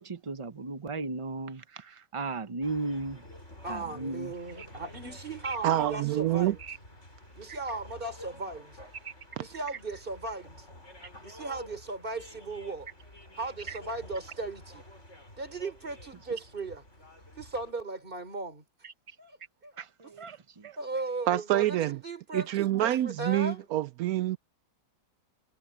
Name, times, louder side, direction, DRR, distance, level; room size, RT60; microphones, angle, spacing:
voice 1, 0.0-3.2 3.7-4.3 4.6-4.7 5.4-5.6 6.7-6.8 7.5-7.6 9.0-9.1 13.7-13.8 19.8-20.8, right 3 dB, 55° right, 0.3 m, -36 dB
sound 1, 2.6-17.7, left 1 dB, 35° left, 7.7 m, -50 dB
voice 2, 3.6-6.6 7.4-8.8 9.4-10.7 11.2-12.9 13.3-14.8 15.4-16.8 17.4-18.6 19.2-19.4 19.6-19.7 20.0-20.1 20.8-23.7, right 3 dB, 25° right, 3.8 m, -37 dB
voice 3, 5.6-6.6 9.4-9.5 21.3-22.0 22.3-24.4, right 13 dB, 75° right, 0.8 m, -27 dB
omnidirectional pair, 2.0 m